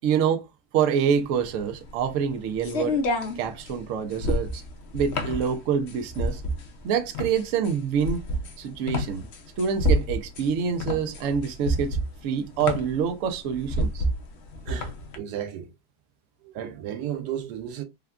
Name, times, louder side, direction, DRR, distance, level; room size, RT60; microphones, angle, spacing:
voice 1, 0.0-0.5 0.7-3.0 3.4-4.6 4.9-6.4 6.8-8.2 8.6-9.3 9.6-12.0 12.2-14.0, right 7 dB, 65° right, 0.8 m, -26 dB
sound 1, 1.3-15.2, equal, 60° left, 0.7 m, -29 dB
voice 2, 14.6-15.7 16.4-17.8, right 10 dB, 90° right, 1.2 m, -34 dB
3.5 x 2.2 x 2.3 m
omnidirectional pair, 1.7 m